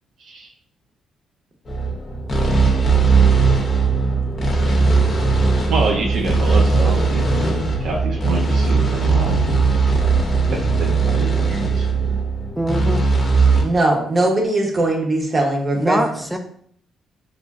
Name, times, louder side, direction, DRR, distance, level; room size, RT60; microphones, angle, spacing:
sound 1, 1.7-13.6, right 4 dB, 40° left, 0.6 m, -18 dB
voice 1, 5.7-9.6 10.5-12.1, right 3 dB, 70° right, 0 dB, 0.5 m, -26 dB
voice 2, 12.6-13.0 15.7-16.4, right 1 dB, ahead, 5 dB, 0.3 m, -22 dB
voice 3, 13.6-16.0, right 2 dB, 35° right, 2 dB, 0.7 m, -19 dB
3.0 x 2.4 x 2.4 m, 0.62 s
cardioid pair, 90°, 0 cm